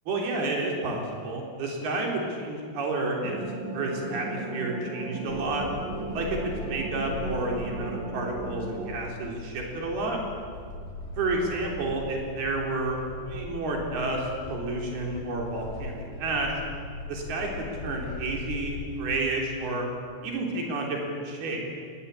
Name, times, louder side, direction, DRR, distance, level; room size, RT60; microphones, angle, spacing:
voice 1, 0.1-3.4 3.7-5.6 6.1-6.4 6.6-10.2 11.2-16.6 17.1-19.9 20.2-21.0 21.2-21.6, right 2 dB, 90° right, 0 dB, 5.7 m, -30 dB
sound 1, 3.2-8.9, right 3 dB, 65° right, 5.6 m, -36 dB
sound 2, 5.3-19.2, left 3 dB, 70° left, 7.9 m, -40 dB
28.0 x 21.0 x 8.4 m, 2.2 s
omnidirectional pair, 4.3 m